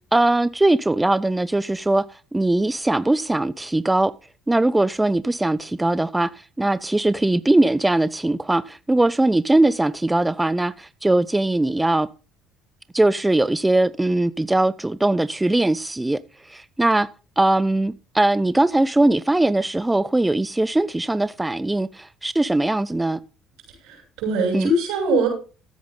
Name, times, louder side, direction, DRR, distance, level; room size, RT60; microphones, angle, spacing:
voice 1, 0.1-2.0 2.3-4.1 4.5-12.1 12.9-17.1 17.4-23.2 24.5-24.7, right 2 dB, 10° right, 0.6 m, -20 dB
voice 2, 23.8-25.3, right 2 dB, 75° right, 7.0 m, -22 dB
14.5 x 8.6 x 3.8 m
supercardioid pair, 70°, 0 cm